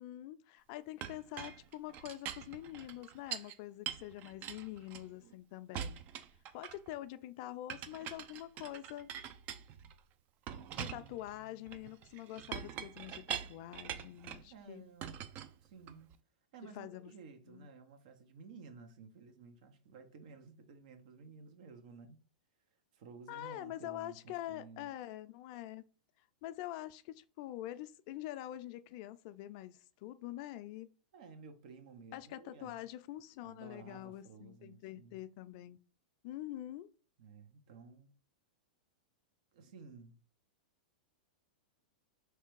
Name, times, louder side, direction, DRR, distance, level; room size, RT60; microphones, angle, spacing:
voice 1, 0.0-6.0 6.5-9.1 10.8-14.9 16.7-17.1 17.5-17.7 23.3-25.8 26.4-30.9 32.1-35.8 36.2-36.9, left 14 dB, 50° left, 0.4 m, -45 dB
Chink clink, 1.0-3.5 3.9-5.3 5.7-7.0 7.7-10.0 10.5-14.5 15.0-16.2, right 9 dB, 40° right, 0.4 m, -44 dB
voice 2, 10.5-11.9 14.5-15.2 15.6-16.1 16.5-22.2 22.9-24.9 31.1-32.8 33.4-35.2 37.2-38.1 39.5-40.2, right 5 dB, 60° right, 0.9 m, -54 dB
3.4 x 3.2 x 4.6 m
hypercardioid pair, 115°, 5 cm